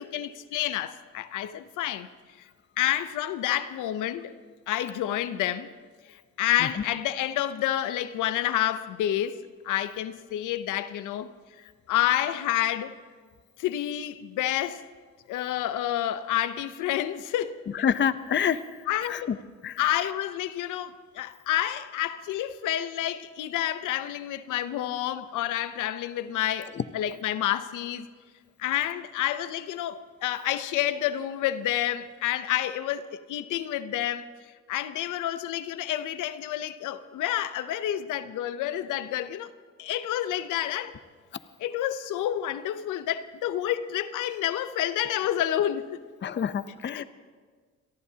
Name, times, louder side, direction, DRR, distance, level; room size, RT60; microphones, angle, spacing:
voice 1, 0.0-2.1 2.8-4.3 4.7-5.7 6.1-11.3 11.6-13.0 13.6-14.8 15.3-17.6 18.9-19.4 19.8-28.1 28.6-34.3 34.7-39.5 39.8-40.9 41.6-46.0 46.9-47.0, left 12 dB, 85° left, 0.7 m, -29 dB
voice 2, 17.8-18.6 19.1-19.4 19.6-19.8 46.2-47.0, left 8 dB, 40° left, 0.6 m, -26 dB
27.0 x 18.5 x 2.8 m
cardioid pair, 90°, 30 cm